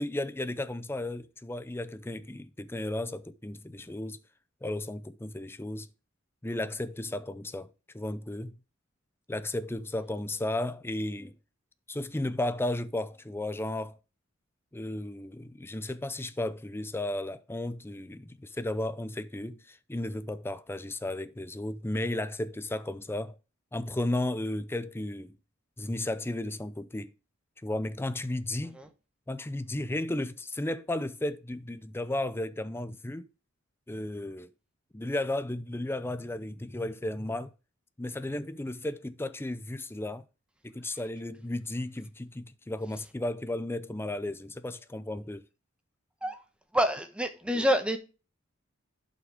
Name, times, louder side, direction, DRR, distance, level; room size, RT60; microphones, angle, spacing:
voice 1, 0.0-4.2 4.6-5.9 6.4-8.6 9.3-11.4 11.9-14.0 14.7-23.4 23.7-25.4 25.8-27.1 27.6-28.8 29.3-33.3 33.9-34.5 34.9-37.5 38.0-40.2 40.6-45.4, left 1 dB, 10° left, 0.5 m, -34 dB
voice 2, 46.7-48.0, equal, 5° right, 1.2 m, -27 dB
11.0 x 6.0 x 3.5 m
head